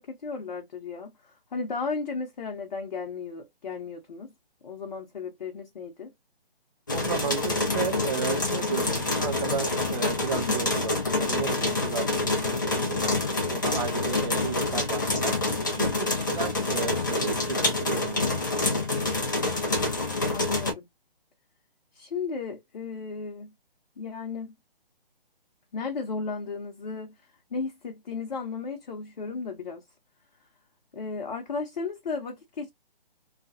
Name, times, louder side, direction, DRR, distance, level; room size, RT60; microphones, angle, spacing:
voice 1, 0.0-4.3 4.6-6.1 10.3-10.6 20.3-20.9 21.9-23.5 24.0-24.5 25.7-29.8 30.9-32.7, left 4 dB, 50° left, 0.8 m, -35 dB
sound 1, 6.9-20.7, left 2 dB, 20° left, 0.4 m, -27 dB
voice 2, 6.9-13.1 13.5-15.4 15.8-18.4, right 6 dB, 45° right, 0.6 m, -34 dB
2.4 x 2.2 x 2.5 m
figure-of-eight pair, 150°, 29 cm